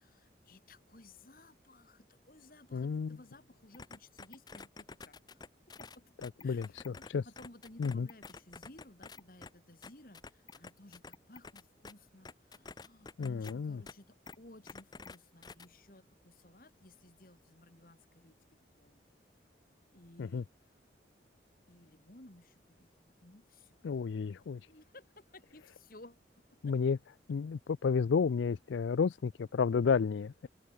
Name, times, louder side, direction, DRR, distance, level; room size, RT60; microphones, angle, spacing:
voice 1, 0.0-5.4 5.8-6.1 6.4-18.4 18.7-19.0 19.9-20.9 21.7-22.9 23.2-23.8 24.7-26.8, left 1 dB, 50° left, 2.4 m, -57 dB
voice 2, 2.7-3.2 6.4-7.2 7.8-8.1 13.2-13.8 20.2-20.4 23.8-24.6 26.6-27.0 27.3-30.5, left 5 dB, 85° left, 0.4 m, -31 dB
sound 1, 3.7-7.1 7.4-9.5 9.8-11.9 12.2-13.5 13.9-14.0 14.3-14.4 14.7-15.2 15.4-15.7, left 4 dB, 20° left, 0.5 m, -49 dB
open air
head